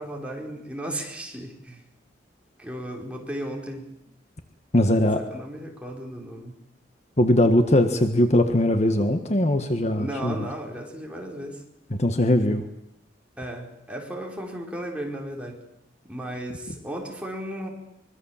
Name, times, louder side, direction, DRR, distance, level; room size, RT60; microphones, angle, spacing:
voice 1, 0.0-1.8 2.6-3.9 5.1-6.6 9.9-11.6 13.4-15.6 16.0-17.7, right 1 dB, 5° right, -1 dB, 4.9 m, -35 dB
voice 2, 4.7-5.2 7.2-10.3 11.9-12.6, left 1 dB, 40° left, 6 dB, 1.6 m, -20 dB
24.5 x 23.0 x 7.4 m, 0.83 s
head